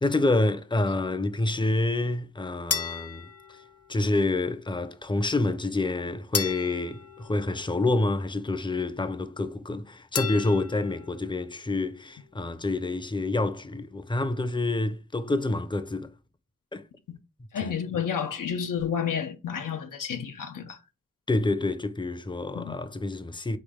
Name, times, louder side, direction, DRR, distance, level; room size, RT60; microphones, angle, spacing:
voice 1, 0.0-3.6 3.9-16.1 16.7-16.8 17.6-17.7 21.3-23.6, left 2 dB, 15° left, 0.6 m, -28 dB
sound 1, 2.7-4.2 6.3-8.2 10.1-11.3, left 6 dB, 50° left, 0.8 m, -34 dB
voice 2, 17.5-20.8 22.5-22.7, left 7 dB, 80° left, 0.7 m, -30 dB
3.9 x 3.3 x 3.5 m
cardioid pair, 40°, 32 cm